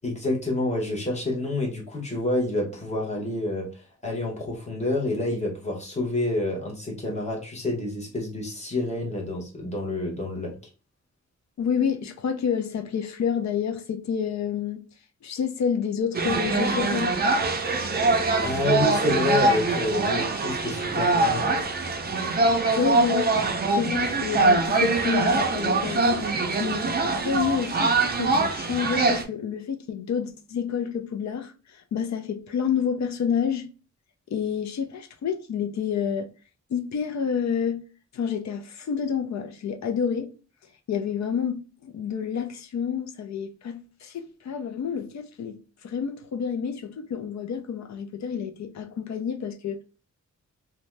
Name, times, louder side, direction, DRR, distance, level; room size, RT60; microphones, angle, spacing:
voice 1, 0.0-10.5 18.4-21.5, left 2 dB, 25° left, 0.9 m, -28 dB
voice 2, 11.6-14.8 15.2-17.1 22.8-23.3 23.7-26.3 26.6-33.7 34.3-36.3 36.7-37.8 38.1-40.3 40.9-49.8, left 7 dB, 70° left, 0.5 m, -29 dB
sound 1, 16.1-29.2, right 3 dB, 35° right, 0.4 m, -23 dB
2.6 x 2.2 x 3.1 m
wide cardioid pair, 170°, 29 cm